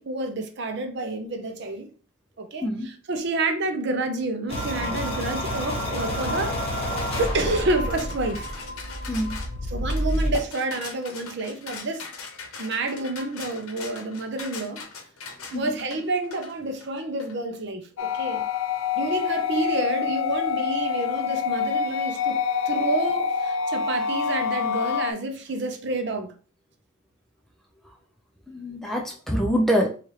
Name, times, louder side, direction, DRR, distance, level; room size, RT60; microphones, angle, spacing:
voice 1, 0.0-1.9 2.4-6.8 7.2-8.4 9.7-12.1 12.6-14.8 15.5-18.4 19.0-26.3, right 2 dB, 50° right, 0.5 m, -29 dB
sound 1, 4.5-10.4, equal, 25° left, 0.9 m, -29 dB
sound 2, 7.0-17.3, left 4 dB, 85° left, 0.7 m, -41 dB
sound 3, 18.0-25.1, left 7 dB, 65° left, 0.3 m, -26 dB
voice 2, 28.5-29.9, equal, ahead, 0.4 m, -25 dB
3.2 x 2.4 x 4.1 m
head